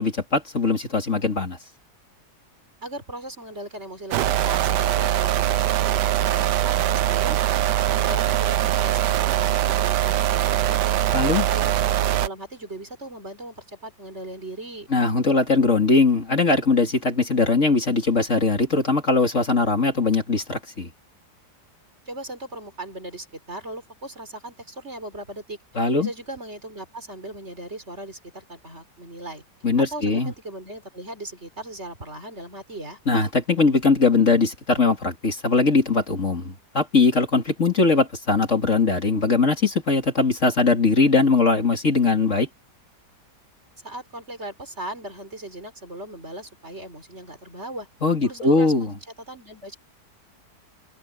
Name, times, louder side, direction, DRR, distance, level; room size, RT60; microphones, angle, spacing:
voice 1, 0.0-1.6 11.1-11.5 14.9-20.9 25.8-26.1 29.6-30.3 33.1-42.5 48.0-48.9, left 3 dB, 45° left, 2.9 m, -20 dB
voice 2, 2.8-7.4 7.7-10.8 11.1-14.9 22.1-25.6 26.0-29.4 29.8-33.0 43.8-47.9 48.2-48.9 49.3-49.8, right 1 dB, 40° right, 4.6 m, -38 dB
sound 1, 4.1-12.3, right 12 dB, 80° right, 1.4 m, -22 dB
omnidirectional pair, 1.8 m